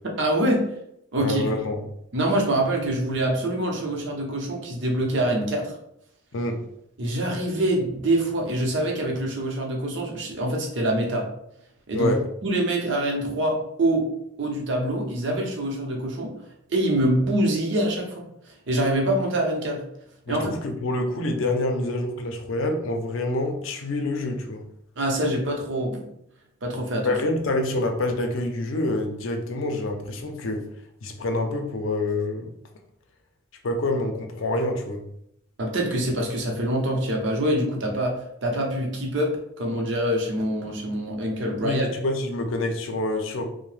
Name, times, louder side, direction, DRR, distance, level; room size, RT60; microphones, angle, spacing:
voice 1, 0.2-0.6 1.1-1.4 2.1-5.7 7.0-11.3 11.9-12.1 12.4-14.1 14.4-16.3 16.7-18.2 18.7-19.8 20.3-20.5 25.0-26.0 26.6-27.2 35.6-42.0, right 1 dB, 60° right, 0 dB, 0.7 m, -25 dB
voice 2, 1.2-1.8 6.3-6.6 11.9-12.2 20.3-24.6 27.0-30.6 31.0-32.5 33.6-35.0 41.6-43.5, left 2 dB, 75° left, 4 dB, 0.5 m, -26 dB
2.7 x 2.1 x 3.2 m, 0.76 s
head